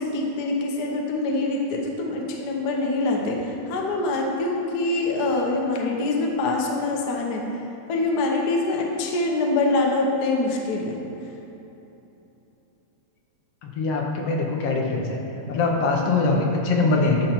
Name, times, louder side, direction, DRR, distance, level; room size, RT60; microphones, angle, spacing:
voice 1, 0.0-7.4 7.9-10.9, left 2 dB, 80° left, 0 dB, 0.8 m, -24 dB
voice 2, 13.6-15.2 15.5-17.3, left 3 dB, 65° left, 0 dB, 2.0 m, -22 dB
11.0 x 7.1 x 4.5 m, 3.0 s
omnidirectional pair, 3.3 m